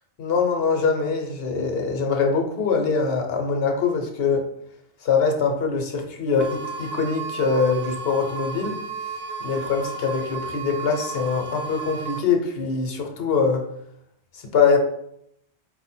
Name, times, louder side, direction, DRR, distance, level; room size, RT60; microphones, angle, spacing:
voice 1, 0.2-4.5 5.0-8.8 9.4-13.7 14.3-14.8, left 5 dB, 65° left, 3 dB, 0.9 m, -23 dB
sound 1, 6.4-12.2, right 4 dB, 60° right, 0.8 m, -33 dB
4.8 x 2.1 x 4.2 m, 0.75 s
omnidirectional pair, 1.1 m